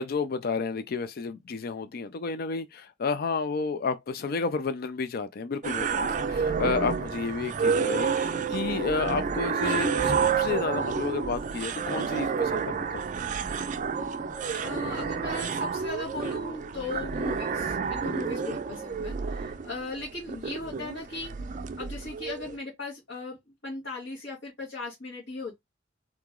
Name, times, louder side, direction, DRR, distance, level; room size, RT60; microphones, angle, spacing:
voice 1, 0.0-13.0, left 4 dB, 55° left, 0.4 m, -31 dB
sound 1, 5.6-22.6, right 5 dB, 45° right, 0.4 m, -29 dB
voice 2, 14.6-21.5 21.8-23.4 23.6-25.6, left 3 dB, 80° left, 2.3 m, -38 dB
3.7 x 2.9 x 3.7 m
head